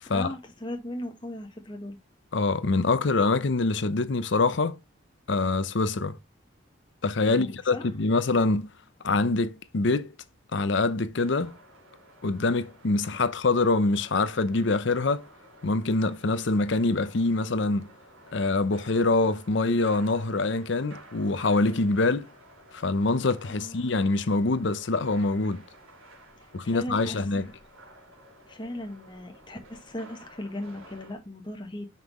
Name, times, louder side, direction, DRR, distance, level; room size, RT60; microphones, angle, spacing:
voice 1, 0.1-2.0 7.3-7.8 23.5-23.8 26.4-27.2 28.5-31.9, left 1 dB, 20° left, 1.1 m, -37 dB
voice 2, 2.3-4.8 5.3-6.2 7.0-8.7 9.0-10.1 10.5-11.5 12.2-15.3 15.6-17.9 18.3-22.3 22.7-25.6 26.5-27.5, left 3 dB, 60° left, 0.6 m, -25 dB
sound 1, 11.2-31.2, right 1 dB, 90° right, 3.4 m, -52 dB
5.8 x 5.4 x 3.0 m
head